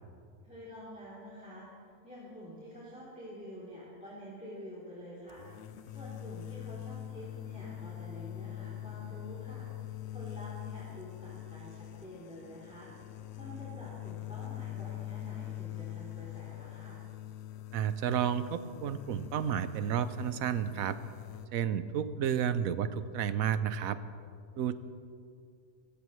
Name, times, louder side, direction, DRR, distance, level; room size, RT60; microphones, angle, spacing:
voice 1, 0.4-1.7 2.0-5.4 5.9-12.9 13.3-17.0, equal, 5° right, -8 dB, 3.3 m, -48 dB
sound 1, 5.3-21.5, left 13 dB, 60° left, 0.7 m, -43 dB
voice 2, 17.7-21.0 21.5-24.0 24.6-24.7, right 8 dB, 75° right, 12 dB, 1.1 m, -31 dB
24.5 x 15.5 x 3.2 m, 2.3 s
omnidirectional pair, 1.5 m